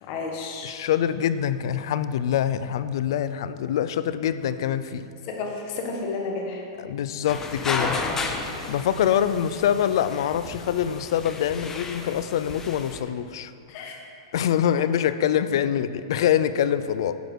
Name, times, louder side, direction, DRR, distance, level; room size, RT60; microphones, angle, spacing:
voice 1, 0.0-0.7 5.3-6.6 13.7-14.0, left 3 dB, 45° left, 1 dB, 1.5 m, -31 dB
voice 2, 0.6-5.0 6.8-8.0 8.6-13.5 14.3-17.2, left 9 dB, 70° left, 13 dB, 0.4 m, -25 dB
sound 1, 7.3-13.0, left 3 dB, 15° left, 0.7 m, -33 dB
10.0 x 4.8 x 6.2 m, 2.5 s
hypercardioid pair, 135°, 2 cm